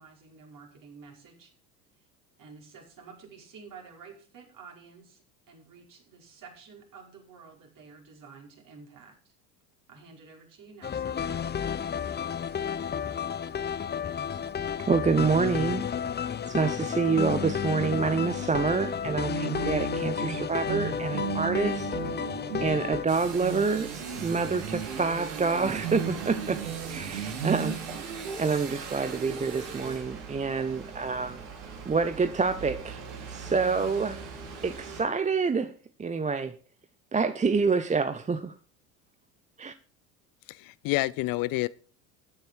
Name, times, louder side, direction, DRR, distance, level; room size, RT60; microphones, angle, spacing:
voice 1, 0.0-1.5 2.4-5.2 5.5-9.3 9.9-11.4, right 5 dB, 45° right, 5.4 m, -50 dB
sound 1, 10.8-23.1, left 8 dB, 25° left, 0.9 m, -32 dB
voice 2, 14.9-15.9 16.5-21.9 22.6-23.9 24.2-26.6 26.9-27.8 28.4-31.4 31.9-33.0 33.3-34.2 34.6-36.6 37.1-38.5 39.6-39.7, right 4 dB, 15° right, 0.8 m, -27 dB
sound 2, 16.8-30.1, right 7 dB, 85° right, 2.7 m, -37 dB
sound 3, 23.1-35.0, right 5 dB, 60° right, 4.1 m, -41 dB
voice 3, 40.5-41.7, left 19 dB, 50° left, 0.6 m, -28 dB
14.0 x 9.4 x 4.7 m
hypercardioid pair, 75°, 44 cm